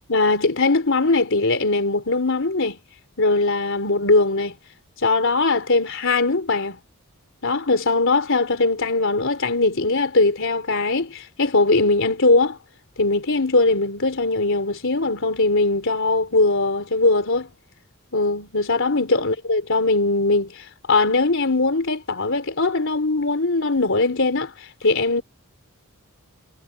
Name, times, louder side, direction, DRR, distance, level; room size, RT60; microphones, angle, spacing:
voice 1, 0.1-2.8 3.2-4.6 5.0-6.8 7.4-12.6 13.0-17.5 18.1-25.2, left 3 dB, 60° left, 3.7 m, -20 dB
head